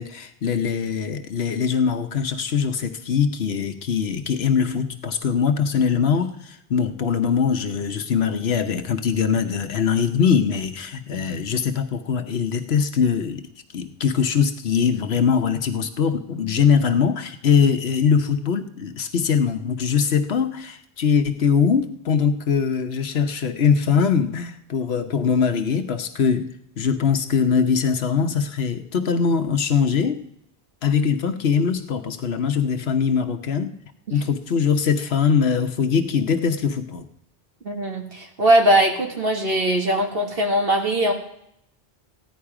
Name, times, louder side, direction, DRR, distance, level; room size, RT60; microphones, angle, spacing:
voice 1, 0.0-13.5 13.7-30.2 30.8-33.7 34.1-37.1, left 6 dB, 80° left, 8 dB, 1.2 m, -22 dB
voice 2, 37.6-41.1, right 1 dB, 65° right, 3 dB, 2.0 m, -20 dB
15.0 x 10.5 x 4.8 m, 0.75 s
omnidirectional pair, 1.1 m